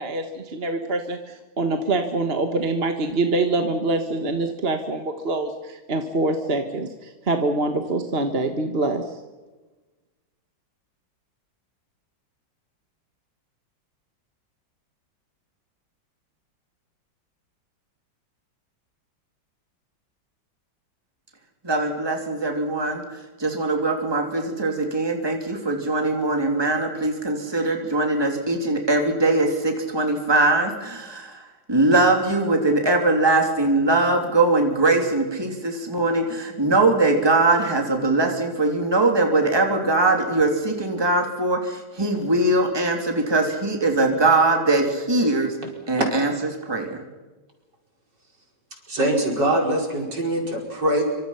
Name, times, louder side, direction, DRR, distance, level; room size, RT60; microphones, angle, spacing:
voice 1, 0.0-9.0, right 2 dB, 35° right, 5 dB, 1.5 m, -25 dB
voice 2, 21.6-23.0 23.4-45.5 45.9-46.3 46.6-47.0, right 2 dB, 10° right, 3 dB, 3.0 m, -21 dB
voice 3, 48.9-51.0, right 1 dB, 60° right, 1 dB, 5.7 m, -23 dB
26.5 x 25.0 x 5.8 m, 1.2 s
omnidirectional pair, 2.1 m